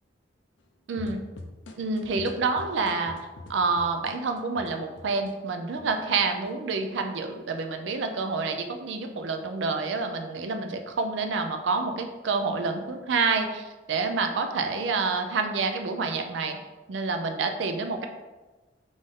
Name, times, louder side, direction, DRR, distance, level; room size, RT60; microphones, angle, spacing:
voice 1, 0.9-1.2 1.8-3.1 3.5-16.6 16.9-18.1, right 4 dB, 85° right, 5 dB, 0.4 m, -28 dB
sound 1, 1.0-5.3 5.8-6.5, left 2 dB, 75° left, 0.5 m, -44 dB
3.7 x 2.6 x 3.4 m, 1.2 s
head